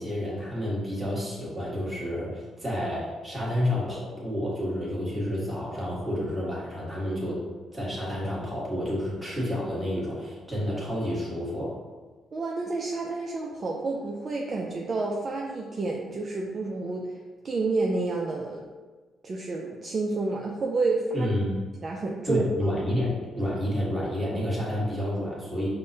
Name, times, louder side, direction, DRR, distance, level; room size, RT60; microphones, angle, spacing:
voice 1, 0.0-7.4 7.7-11.8 21.1-21.6 22.3-25.7, left 1 dB, 10° right, -7 dB, 1.4 m, -29 dB
voice 2, 12.3-17.2 17.4-18.6 19.2-21.3 21.8-22.4, right 3 dB, 40° right, -1 dB, 0.4 m, -29 dB
5.3 x 2.1 x 2.7 m, 1.4 s
cardioid pair, 90°, 0 cm